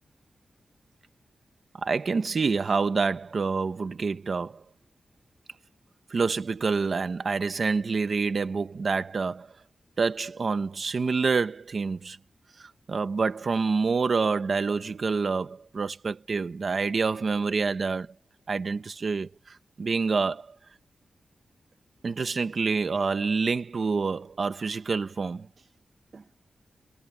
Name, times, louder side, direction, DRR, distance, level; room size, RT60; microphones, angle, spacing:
voice 1, 1.8-4.6 6.1-9.5 10.0-12.2 12.6-18.1 18.5-20.5 22.0-25.5 26.1-26.2, right 4 dB, 45° right, 1.2 m, -27 dB
wide cardioid pair, 175°, 0 cm